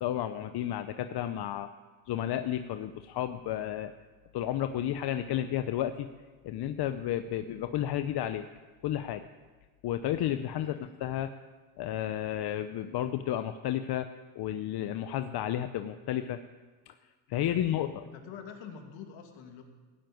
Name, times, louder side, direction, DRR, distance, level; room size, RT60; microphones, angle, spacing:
voice 1, 0.0-1.7 2.1-3.9 4.3-6.1 6.4-8.4 8.8-9.3 9.8-11.3 11.8-14.1 14.4-16.4 16.9-17.0 17.3-18.0, left 11 dB, 55° left, 9 dB, 0.7 m, -32 dB
voice 2, 10.5-11.0 17.3-19.6, left 6 dB, 70° left, 3 dB, 2.6 m, -48 dB
16.5 x 7.8 x 9.3 m, 1.4 s
cardioid pair, 120°, 47 cm